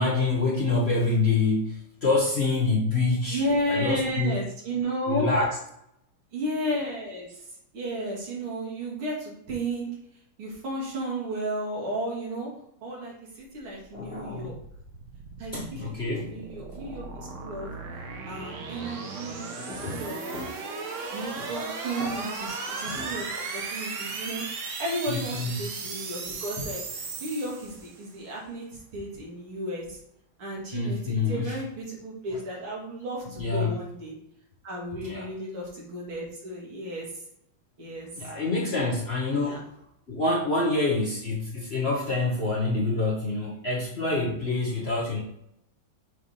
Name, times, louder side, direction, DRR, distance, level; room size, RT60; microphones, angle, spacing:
voice 1, 0.0-3.4 3.7-4.4 5.1-5.5 13.9-14.6 15.5-16.3 19.7-20.0 20.3-20.5 21.3-21.5 22.0-22.1 22.7-23.2 25.1-25.6 30.7-31.6 33.4-33.8 35.0-35.3 38.2-39.6 40.1-45.2, left 3 dB, 45° left, -4 dB, 0.9 m, -27 dB
voice 2, 3.3-5.3 6.3-7.4 7.7-9.9 10.4-12.5 12.8-14.6 15.4-17.7 18.2-20.6 21.1-30.0 30.4-34.2 34.6-37.1 37.8-38.1 38.4-38.9 39.3-39.6, right 1 dB, 85° right, -3 dB, 2.8 m, -33 dB
sound 1, 13.7-28.1, right 4 dB, 55° right, 0.9 m, -37 dB
6.4 x 3.2 x 5.5 m, 0.76 s
omnidirectional pair, 2.3 m